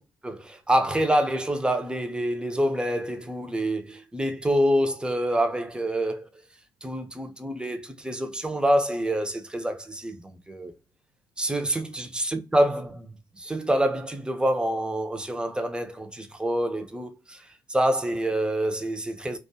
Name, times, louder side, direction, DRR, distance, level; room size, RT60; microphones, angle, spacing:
voice 1, 0.2-6.3 6.8-10.7 11.4-13.1 13.3-17.4 17.7-19.4, right 1 dB, 10° right, 0.7 m, -26 dB
2.5 x 2.3 x 2.7 m
hypercardioid pair, 50°, 11 cm